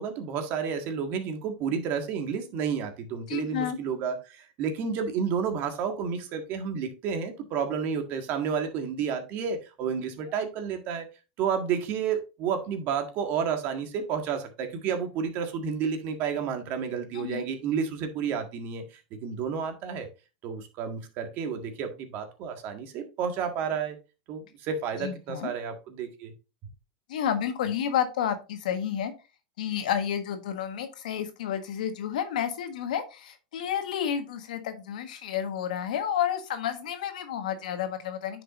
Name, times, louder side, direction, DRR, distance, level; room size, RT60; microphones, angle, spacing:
voice 1, 0.0-11.1 11.4-18.8 19.1-20.1 20.4-24.0 24.3-26.3, right 6 dB, 50° right, 1.7 m, -31 dB
voice 2, 3.3-3.8 17.1-17.4 25.0-25.5 27.1-29.1 29.6-38.4, left 9 dB, 80° left, 1.4 m, -30 dB
9.7 x 5.4 x 2.5 m
hypercardioid pair, 110°, 4 cm